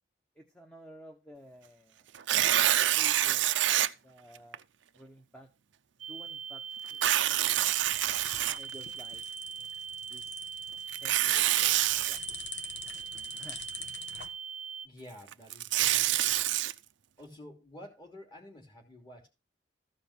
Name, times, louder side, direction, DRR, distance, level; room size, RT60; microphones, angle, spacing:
voice 1, 0.3-2.1 2.9-3.5 4.0-4.6 4.9-5.5 6.1-6.6 6.9-7.5 7.7-8.0 8.5-9.7 10.1-10.4 10.9-12.2 12.9-13.1 13.3-13.7, equal, 5° left, 1.1 m, -53 dB
Tearing, 2.1-3.9 4.5-4.6 6.9-9.0 10.9-12.2 15.3-16.7, right 13 dB, 85° right, 0.6 m, -26 dB
sound 1, 6.0-14.9, right 7 dB, 35° right, 0.6 m, -41 dB
sound 2, 7.5-14.3, left 5 dB, 70° left, 1.3 m, -46 dB
voice 2, 14.8-16.5 17.2-19.3, left 1 dB, 25° left, 2.9 m, -50 dB
14.5 x 5.2 x 5.9 m
head